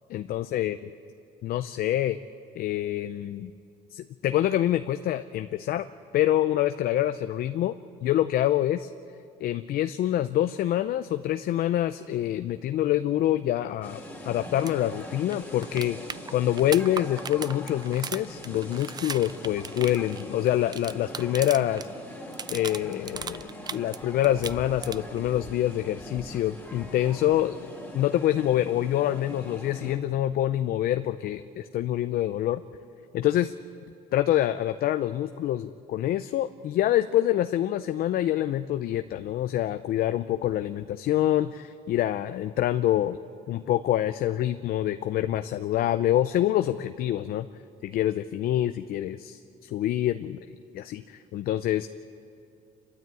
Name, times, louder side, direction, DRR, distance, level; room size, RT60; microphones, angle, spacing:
voice 1, 0.1-0.8 1.4-2.2 2.6-3.5 3.9-5.9 6.1-7.8 8.0-8.9 9.4-16.0 16.3-21.9 22.5-27.6 27.9-32.6 33.1-33.5 34.1-43.2 43.5-47.5 47.8-50.5 50.7-51.9, left 12 dB, 65° left, 10 dB, 0.6 m, -26 dB
sound 1, 13.8-29.9, left 1 dB, 10° left, 3.0 m, -42 dB
sound 2, 14.6-14.7 15.0-15.1 15.3-21.9 22.2-24.0 24.2-25.2 27.2-27.3, right 6 dB, 25° right, 0.4 m, -37 dB
28.5 x 12.5 x 8.9 m, 2.5 s
cardioid pair, 110°, 17 cm